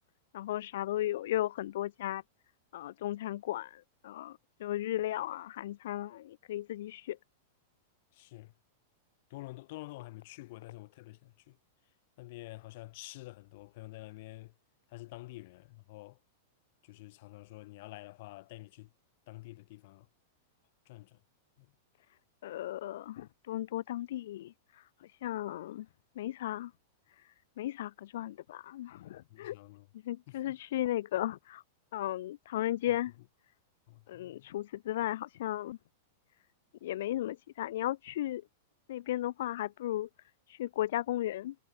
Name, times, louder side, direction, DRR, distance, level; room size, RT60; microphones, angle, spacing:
voice 1, 0.3-2.2 2.7-7.2 22.4-24.8 25.1-25.9 26.2-26.7 27.6-29.6 30.0-31.6 31.9-33.1 34.1-35.8 36.8-38.4 38.9-40.1 40.5-41.5, left 13 dB, 60° left, 0.5 m, -35 dB
voice 2, 8.1-8.5 9.3-11.6 12.2-14.5 14.9-16.2 16.8-18.9 19.3-20.1 20.8-21.2 21.6-21.7 29.3-29.9 30.3-30.6 33.9-34.5, left 20 dB, 45° left, 3.2 m, -48 dB
supercardioid pair, 170°, 0 cm